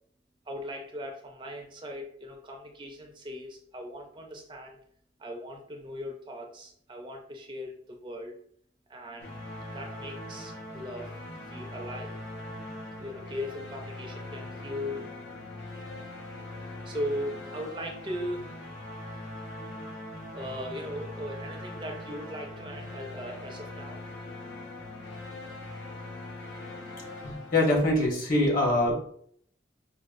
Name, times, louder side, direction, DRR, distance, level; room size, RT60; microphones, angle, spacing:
voice 1, 0.5-4.8 5.2-8.4 8.9-9.3 9.7-11.2 11.5-12.2 13.0-15.0 16.8-18.5 20.3-24.0, equal, 30° right, 2 dB, 0.5 m, -38 dB
sound 1, 9.2-28.1, left 1 dB, 85° left, 0.9 m, -41 dB
voice 2, 27.2-28.9, left 1 dB, 50° left, -2 dB, 1.3 m, -24 dB
5.2 x 2.2 x 2.5 m, 0.63 s
head